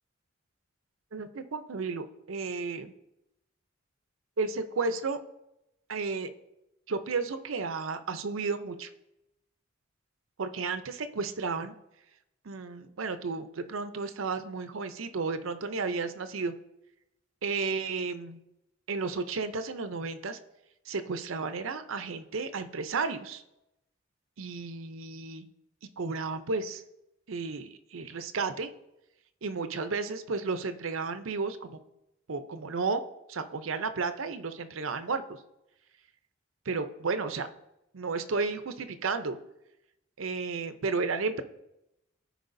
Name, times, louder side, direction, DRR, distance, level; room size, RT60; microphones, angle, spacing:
voice 1, 1.1-2.9 4.4-5.2 5.9-6.3 6.9-8.9 10.4-11.7 12.4-16.5 17.4-18.4 18.9-20.4 20.9-23.4 24.4-25.5 26.0-26.8 27.3-28.7 29.4-31.8 32.3-33.0 33.3-35.2 36.7-37.5 37.9-39.4 40.2-41.4, right 4 dB, 80° right, 10 dB, 0.6 m, -33 dB
14.0 x 4.8 x 2.6 m, 0.87 s
head